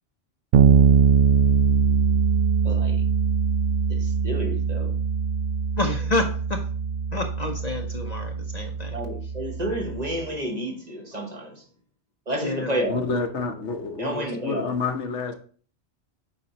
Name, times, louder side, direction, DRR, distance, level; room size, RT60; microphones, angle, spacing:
Bass guitar, 0.5-10.2, right 6 dB, 70° right, 0.9 m, -22 dB
voice 1, 2.6-3.0 3.9-4.9 8.9-11.6 12.3-13.0 14.0-14.7, right 1 dB, 35° right, 1.3 m, -30 dB
voice 2, 5.8-6.6 7.1-8.9 12.4-12.7, left 2 dB, 40° left, 0.7 m, -28 dB
voice 3, 12.9-15.3, left 4 dB, 85° left, 1.2 m, -28 dB
8.6 x 5.2 x 2.9 m
omnidirectional pair, 1.2 m